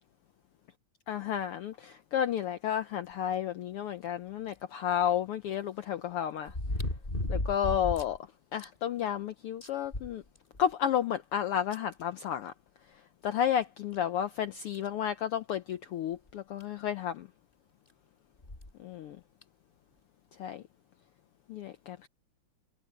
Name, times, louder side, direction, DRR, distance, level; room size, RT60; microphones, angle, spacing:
voice 1, 1.1-6.5 7.3-8.2 8.5-10.2 10.6-12.5 13.2-17.3 18.8-19.2 20.4-20.6 21.5-22.1, left 9 dB, 80° left, 1.3 m, -32 dB
sound 1, 4.5-4.6 6.5-8.2 8.6-8.7 9.1-9.2 9.6-10.7 11.7-11.8 13.3-13.4 13.9-14.0 14.7-15.0 16.3-16.4 16.6-16.7 18.4-18.7 19.4-19.5, left 1 dB, 15° left, 4.7 m, -34 dB
omnidirectional pair, 3.4 m